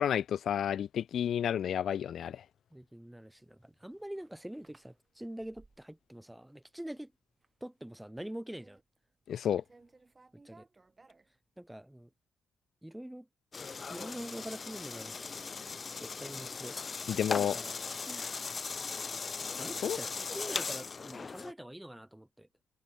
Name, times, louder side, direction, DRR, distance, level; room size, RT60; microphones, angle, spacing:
voice 1, 0.0-2.4 9.3-9.6 17.1-17.6 19.8-20.0, left 9 dB, 65° left, 0.8 m, -31 dB
voice 2, 2.7-7.1 7.6-8.8 10.3-10.6 11.6-12.1 12.8-13.3 13.8-15.3 16.0-16.8 17.3-17.7 18.0-18.3 19.6-22.5, right 1 dB, 5° right, 5.9 m, -45 dB
sound 1, 3.8-6.1 6.4-6.9 7.3-7.6 7.9-9.3 9.6-11.8, right 3 dB, 25° right, 7.6 m, -62 dB
sound 2, 13.5-21.5, left 5 dB, 35° left, 0.5 m, -38 dB
cardioid pair, 90°, 0 cm